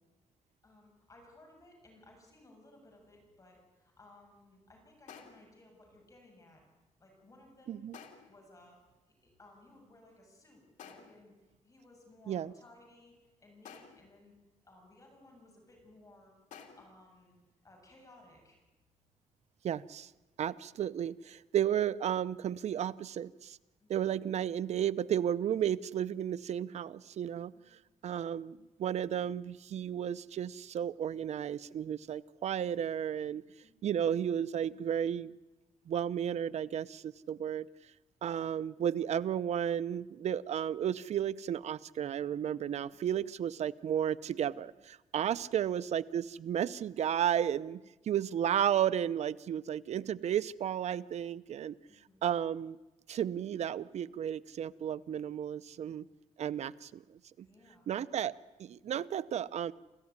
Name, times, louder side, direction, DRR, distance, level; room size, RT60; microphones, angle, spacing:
voice 1, 0.6-6.6 7.0-7.9 8.3-8.8 9.2-11.3 11.6-14.3 14.6-16.3 16.8-17.4 17.6-18.6 23.8-24.1 27.5-27.7 33.6-33.8 43.2-43.3 44.4-44.6 45.1-45.4 51.9-52.3 57.4-57.9, left 2 dB, 25° left, 1 dB, 7.6 m, -59 dB
sound 1, 5.1-5.6 7.9-8.5 10.8-11.4 13.7-14.2 16.5-17.0, left 7 dB, 80° left, 2.8 m, -52 dB
voice 2, 19.6-20.1 20.4-23.6 23.9-27.5 28.0-33.4 33.8-35.3 35.9-37.7 38.2-51.8 52.2-52.8 53.1-56.1 56.4-57.0 57.4-57.5 57.9-59.7, right 9 dB, 65° right, 15 dB, 0.7 m, -33 dB
28.0 x 14.5 x 9.7 m, 1.1 s
cardioid pair, 110°, 12 cm